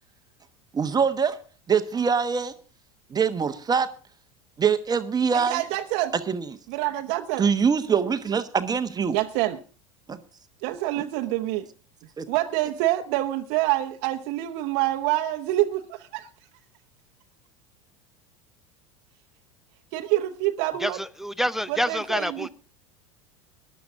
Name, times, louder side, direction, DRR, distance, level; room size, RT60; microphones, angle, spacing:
voice 1, 0.7-1.4 1.7-2.5 3.1-3.9 4.6-5.6 6.3-6.6 7.4-9.2 10.1-10.2 11.0-11.1 12.2-12.3, right 6 dB, 25° right, 9 dB, 1.1 m, -24 dB
voice 2, 5.3-6.1 6.7-7.4 9.1-9.6 10.6-11.7 12.3-16.3 19.9-21.0 21.7-22.5, right 15 dB, 60° right, 6 dB, 1.0 m, -26 dB
voice 3, 20.8-22.5, equal, ahead, 18 dB, 0.5 m, -27 dB
18.5 x 11.5 x 3.6 m, 0.37 s
hypercardioid pair, 85°, 17 cm